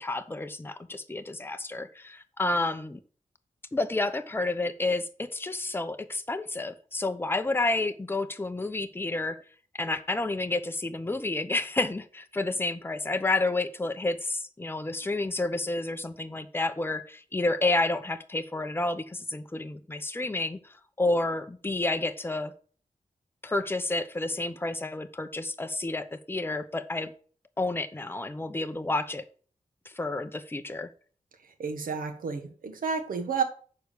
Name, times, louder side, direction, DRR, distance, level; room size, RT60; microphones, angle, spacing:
voice 1, 0.0-3.0 3.7-9.4 9.7-20.6 21.0-22.5 23.4-27.1 27.6-29.2 29.9-30.9, left 2 dB, 15° left, 0.7 m, -30 dB
voice 2, 31.6-33.4, right 5 dB, 90° right, 1.3 m, -31 dB
6.8 x 4.7 x 6.7 m
cardioid pair, 70°, 14 cm